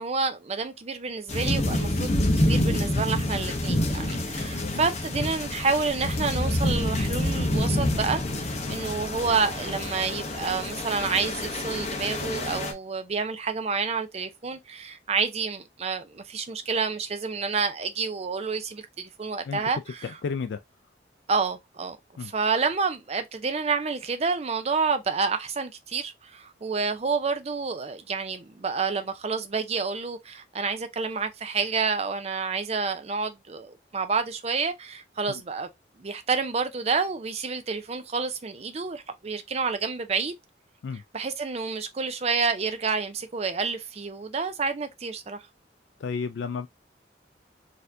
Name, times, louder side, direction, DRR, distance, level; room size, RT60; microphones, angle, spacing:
voice 1, 0.0-2.1 2.4-20.0 21.3-22.0 22.2-35.7 36.0-40.3 41.1-45.5, right 4 dB, 35° right, 0.5 m, -29 dB
sound 1, 1.3-12.7, left 1 dB, 35° left, 0.7 m, -27 dB
voice 2, 4.4-4.9 8.6-8.8 19.5-19.6 20.0-20.6 22.2-22.3 35.3-35.4 40.8-41.0 46.0-46.7, left 5 dB, 70° left, 0.3 m, -33 dB
4.1 x 2.7 x 2.5 m
head